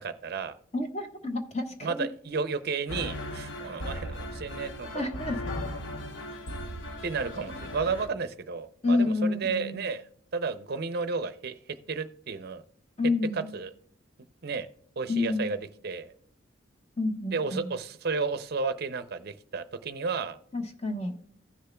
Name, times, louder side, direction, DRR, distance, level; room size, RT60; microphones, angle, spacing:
voice 1, 0.0-0.6 1.8-5.1 7.0-10.0 10.3-11.5 11.9-12.6 13.3-13.7 14.4-14.7 15.0-16.1 17.3-20.4, right 4 dB, 55° right, 11 dB, 0.5 m, -32 dB
voice 2, 0.7-2.1 4.9-5.4 8.8-9.8 13.0-13.5 15.1-15.5 17.0-17.7 20.5-21.1, left 2 dB, 35° left, 4 dB, 1.3 m, -29 dB
sound 1, 2.9-8.1, left 1 dB, 70° left, 1.0 m, -37 dB
15.5 x 6.6 x 2.2 m, 0.64 s
head